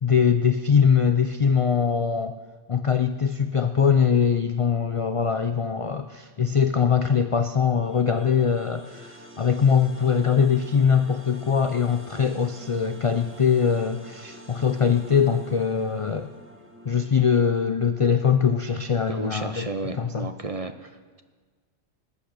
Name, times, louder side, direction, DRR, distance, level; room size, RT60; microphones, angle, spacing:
voice 1, 0.0-2.3 2.7-16.3 16.9-19.7 20.0-20.3, left 7 dB, 55° left, 8 dB, 0.3 m, -22 dB
sound 1, 7.8-18.9, equal, 10° right, 1.2 m, -47 dB
voice 2, 19.1-20.9, right 3 dB, 35° right, 8 dB, 0.6 m, -32 dB
19.0 x 8.3 x 6.7 m, 1.5 s
omnidirectional pair, 1.3 m